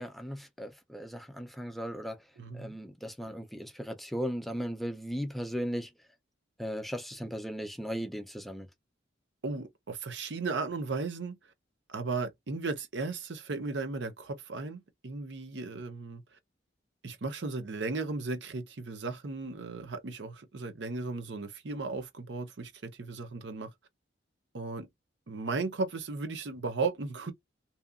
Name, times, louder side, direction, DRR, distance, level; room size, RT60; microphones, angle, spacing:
voice 1, 0.0-2.2 2.5-5.9 6.6-8.7, equal, ahead, 0.4 m, -37 dB
voice 2, 2.4-2.7 9.4-11.4 11.9-16.2 17.0-23.7 24.5-24.9 25.3-27.3, right 3 dB, 70° right, 0.7 m, -35 dB
2.8 x 2.4 x 2.2 m
head